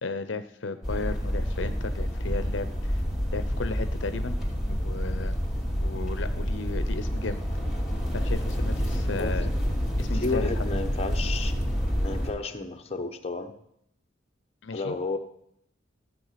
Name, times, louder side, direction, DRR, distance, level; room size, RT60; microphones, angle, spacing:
voice 1, 0.0-3.0 3.3-4.4 4.7-5.4 5.8-7.4 8.1-9.5 10.0-10.6 14.6-14.9, left 3 dB, 70° left, 11 dB, 0.7 m, -34 dB
sound 1, 0.8-12.3, equal, 5° right, 2.7 m, -28 dB
voice 2, 10.1-11.5 12.0-13.6 14.7-15.2, left 3 dB, 35° left, 4 dB, 0.9 m, -32 dB
14.0 x 7.7 x 5.8 m, 0.74 s
head